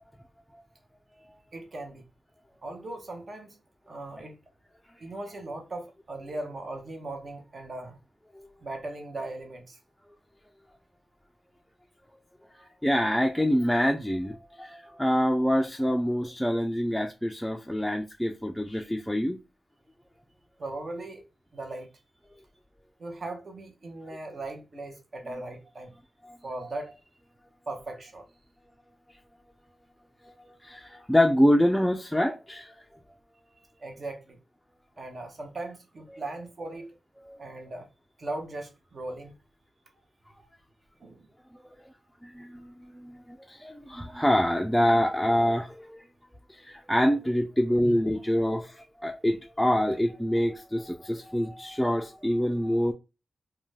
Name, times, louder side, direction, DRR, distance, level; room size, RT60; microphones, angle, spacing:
voice 1, 1.5-2.0 2.6-3.6 3.9-4.4 5.0-8.0 8.6-9.8 20.6-21.2 21.5-21.9 23.0-25.9 26.4-27.1 27.7-28.2 33.6-34.4 35.0-37.0 37.4-37.9 38.2-39.3 40.4-40.5 41.0-41.3 42.5-42.6 44.1-44.2 47.0-47.1, right 2 dB, 55° right, 0.8 m, -38 dB
voice 2, 12.5-19.4 26.2-26.4 29.1-29.2 30.2-30.3 30.6-32.8 36.1-36.2 37.2-37.4 42.2-46.1 46.5-52.9, equal, 5° left, 0.3 m, -26 dB
2.5 x 2.2 x 3.2 m
cardioid pair, 65°, 0 cm